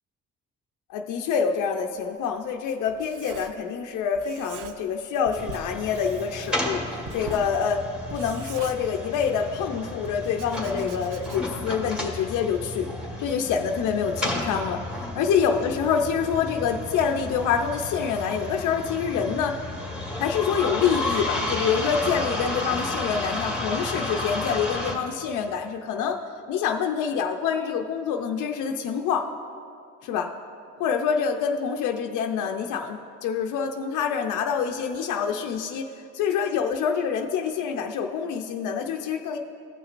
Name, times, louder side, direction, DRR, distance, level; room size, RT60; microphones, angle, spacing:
voice 1, 0.9-7.9 8.1-12.9 13.2-19.6 20.2-26.2 26.5-29.3 30.0-30.3 30.8-35.9 36.1-39.4, left 7 dB, 85° left, 3 dB, 0.5 m, -26 dB
Writing, 2.0-3.9 4.1-5.0 5.2-9.4 10.0-11.7, right 5 dB, 90° right, 0.6 m, -44 dB
sound 1, 5.3-24.9, left 2 dB, 5° right, 1.6 m, -32 dB
16.5 x 5.9 x 2.5 m, 2.4 s
cardioid pair, 90°, 30 cm